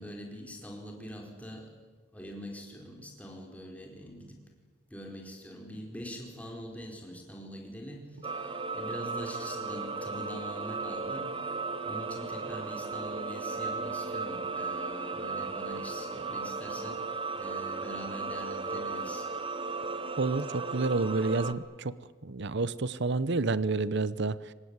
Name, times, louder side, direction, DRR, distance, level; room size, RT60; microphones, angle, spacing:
voice 1, 0.0-1.8 2.1-4.4 4.9-11.6 11.8-19.3, equal, 5° left, 1 dB, 4.6 m, -44 dB
sound 1, 8.2-21.5, right 4 dB, 25° right, 1.3 m, -35 dB
voice 2, 20.2-21.9 22.2-24.5, right 3 dB, 60° right, 17 dB, 0.8 m, -29 dB
25.0 x 19.5 x 9.7 m, 1.4 s
head